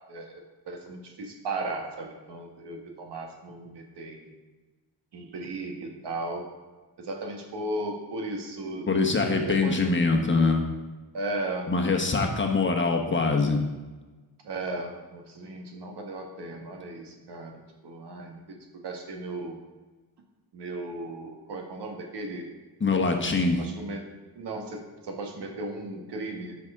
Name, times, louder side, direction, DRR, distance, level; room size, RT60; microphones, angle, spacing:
voice 1, 0.1-4.3 5.1-6.5 7.0-8.9 9.3-9.9 11.1-11.7 12.1-12.7 14.4-17.5 17.8-18.6 18.8-19.6 20.5-22.5 23.6-24.1 24.3-26.6, right 2 dB, 85° right, 2 dB, 1.6 m, -36 dB
voice 2, 8.9-10.7 11.7-13.6 22.8-23.6, left 3 dB, 30° left, 2 dB, 1.2 m, -23 dB
11.5 x 5.8 x 3.7 m, 1.2 s
wide cardioid pair, 115°, 40 cm